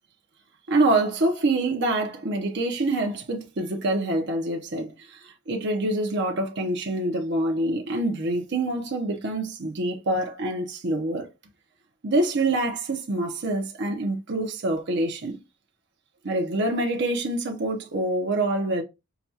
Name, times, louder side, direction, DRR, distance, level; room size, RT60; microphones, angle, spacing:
voice 1, 0.7-11.3 12.0-15.4 16.2-18.8, right 2 dB, 55° right, 0.7 m, -26 dB
5.8 x 2.3 x 2.7 m
head